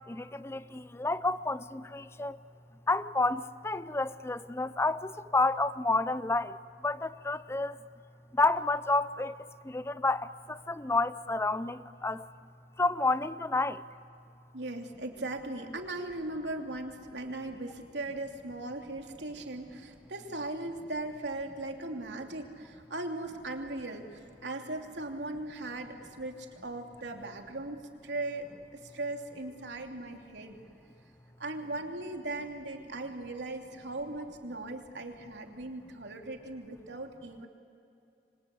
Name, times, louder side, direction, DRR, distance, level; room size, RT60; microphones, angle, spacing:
voice 1, 0.1-2.4 2.9-6.6 6.8-7.7 8.3-9.4 9.7-12.3 12.8-13.8, left 2 dB, 15° left, 0.5 m, -30 dB
voice 2, 14.5-30.6 31.4-37.5, right 2 dB, 90° right, 3.0 m, -38 dB
28.0 x 24.5 x 8.5 m
head